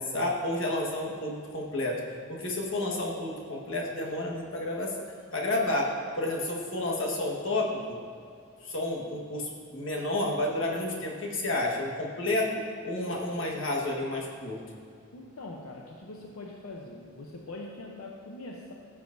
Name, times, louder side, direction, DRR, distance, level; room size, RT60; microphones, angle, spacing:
voice 1, 0.0-2.0 2.3-4.9 5.3-8.0 8.6-14.6, left 1 dB, 65° left, -2 dB, 1.5 m, -30 dB
voice 2, 15.1-18.7, left 2 dB, 90° left, -1 dB, 0.8 m, -42 dB
15.0 x 7.3 x 2.6 m, 2.4 s
head